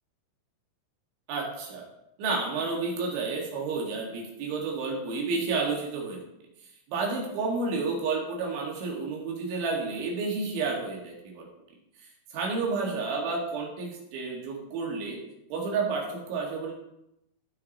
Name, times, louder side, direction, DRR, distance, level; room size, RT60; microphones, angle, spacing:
voice 1, 1.3-1.9 2.2-6.2 6.9-11.5 12.3-15.2 15.5-16.7, right 4 dB, 70° right, -1 dB, 4.3 m, -30 dB
14.5 x 6.6 x 4.2 m, 0.83 s
omnidirectional pair, 5.9 m